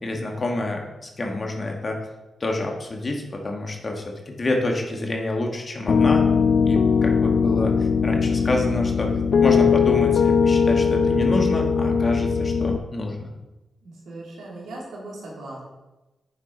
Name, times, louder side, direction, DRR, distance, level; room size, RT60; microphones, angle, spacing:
voice 1, 0.0-2.0 2.4-6.2 6.6-9.1 9.4-13.3, left 2 dB, 45° left, 1 dB, 1.9 m, -27 dB
Piano, 5.9-12.8, left 6 dB, 65° left, 0.5 m, -20 dB
voice 2, 13.8-15.6, right 2 dB, 75° right, -4 dB, 2.9 m, -38 dB
8.6 x 7.2 x 4.0 m, 1.1 s
supercardioid pair, 45°, 0 cm